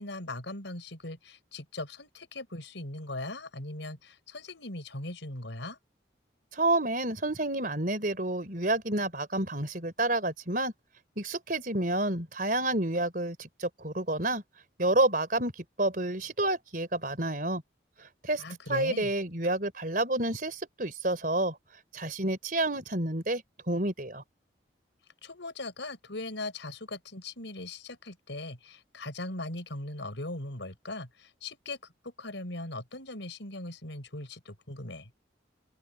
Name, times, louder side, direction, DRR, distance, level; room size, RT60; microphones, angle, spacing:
voice 1, 0.0-5.8 18.4-19.1 25.2-35.1, left 2 dB, 85° left, 5.1 m, -39 dB
voice 2, 6.5-10.7 11.2-14.4 14.8-15.5 15.8-17.6 18.2-18.4 18.7-21.6 21.9-24.2, right 2 dB, 45° right, 4.1 m, -29 dB
open air
head